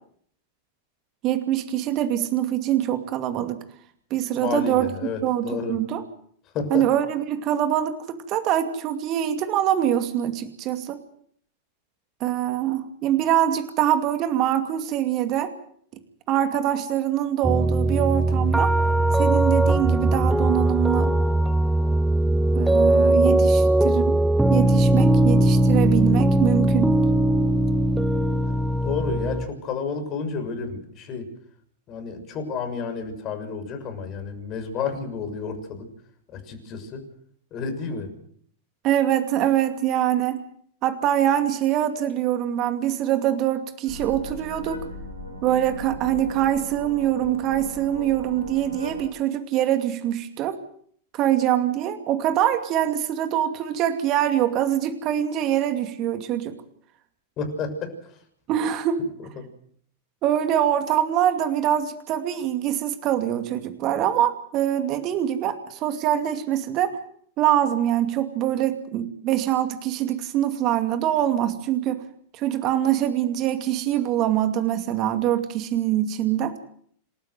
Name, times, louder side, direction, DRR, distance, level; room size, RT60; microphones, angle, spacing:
voice 1, 1.2-3.6 4.1-4.9 5.2-6.0 6.7-11.0 12.2-15.5 16.3-18.7 19.1-21.1 22.5-24.2 24.5-26.9 38.8-40.4 40.8-44.8 45.4-50.6 51.1-56.6 58.5-59.1 60.2-67.0 67.4-72.0 72.3-76.6, right 11 dB, 40° right, 8 dB, 2.5 m, -24 dB
voice 2, 4.4-5.8 6.5-6.9 28.8-31.3 31.9-35.9 36.3-37.0 37.5-38.1 57.4-58.2 59.2-59.5, left 5 dB, 35° left, 8 dB, 6.7 m, -31 dB
sound 1, 17.4-29.5, right 1 dB, 5° right, 1.1 m, -20 dB
sound 2, 43.9-49.1, left 1 dB, 85° left, 7.0 m, -37 dB
28.5 x 12.5 x 8.1 m, 0.62 s
figure-of-eight pair, 90°, 0 cm